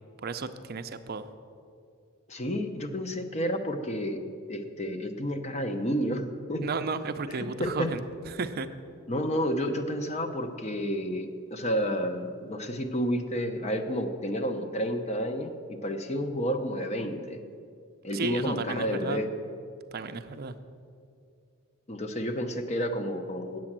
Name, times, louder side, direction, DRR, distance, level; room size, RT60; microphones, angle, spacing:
voice 1, 0.2-1.3 6.6-8.7 18.1-19.2 19.9-20.5, right 4 dB, 45° right, 10 dB, 0.5 m, -33 dB
voice 2, 2.3-4.2 4.5-6.6 7.6-7.9 9.1-17.4 18.0-19.3 21.9-23.6, equal, 30° left, 7 dB, 0.7 m, -30 dB
8.8 x 7.6 x 7.4 m, 2.4 s
head